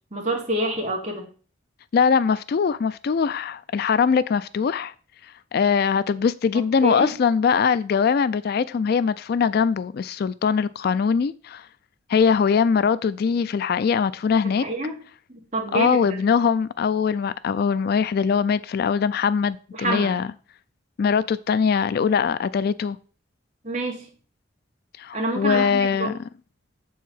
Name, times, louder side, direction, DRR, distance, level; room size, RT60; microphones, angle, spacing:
voice 1, 0.1-1.3 6.5-7.1 14.6-15.0 15.3-16.2 19.7-20.2 23.6-24.1 25.1-26.2, right 2 dB, 40° right, 2.1 m, -27 dB
voice 2, 1.9-4.9 5.5-11.7 12.1-14.7 15.7-20.3 21.0-23.0 25.0-26.2, left 6 dB, 50° left, 0.3 m, -22 dB
7.2 x 4.6 x 5.6 m
head